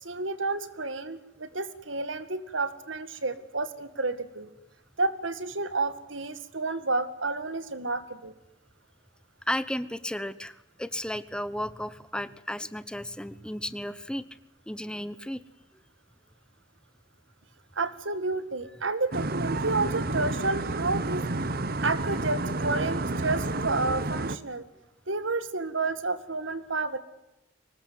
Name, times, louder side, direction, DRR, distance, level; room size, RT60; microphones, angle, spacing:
voice 1, 0.0-4.5 5.0-8.3 17.8-21.2 21.8-24.6 25.1-27.0, right 3 dB, 90° right, 13 dB, 2.1 m, -30 dB
voice 2, 9.5-14.2 14.7-15.4, left 1 dB, 5° left, 15 dB, 0.9 m, -34 dB
sound 1, 19.1-24.4, right 2 dB, 55° right, 1.2 m, -30 dB
24.0 x 20.0 x 9.4 m, 0.91 s
head